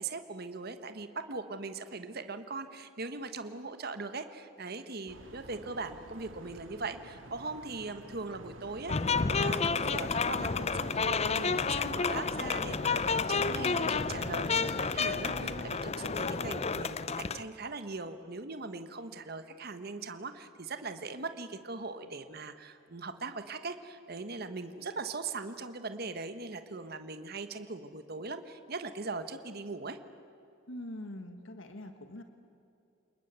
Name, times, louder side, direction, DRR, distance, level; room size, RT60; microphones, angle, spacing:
voice 1, 0.0-30.0, right 3 dB, 55° right, 9 dB, 1.3 m, -40 dB
sound 1, 5.1-15.7, right 1 dB, 85° right, 2.2 m, -48 dB
sound 2, 8.9-17.4, left 5 dB, 35° left, 0.7 m, -30 dB
voice 2, 30.7-32.2, left 1 dB, 80° left, 7 dB, 1.6 m, -43 dB
29.0 x 20.5 x 8.2 m, 2.7 s
head